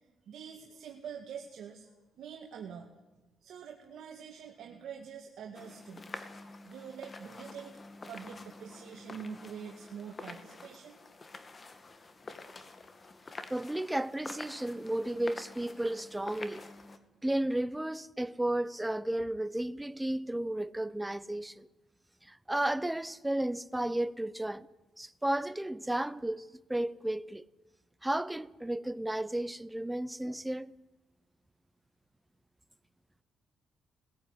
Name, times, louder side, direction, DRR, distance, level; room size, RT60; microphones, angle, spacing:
voice 1, 0.2-1.9 2.2-2.9 3.4-6.1 6.6-7.7 8.1-11.0, right 7 dB, 70° right, 1.9 m, -45 dB
sound 1, 5.5-17.0, left 3 dB, 30° left, 2.0 m, -48 dB
voice 2, 13.5-16.6 17.2-21.7 22.3-24.7 25.0-27.5 28.0-30.7, right 1 dB, 10° right, 0.7 m, -33 dB
19.0 x 15.5 x 9.7 m
cardioid pair, 90°, 0 cm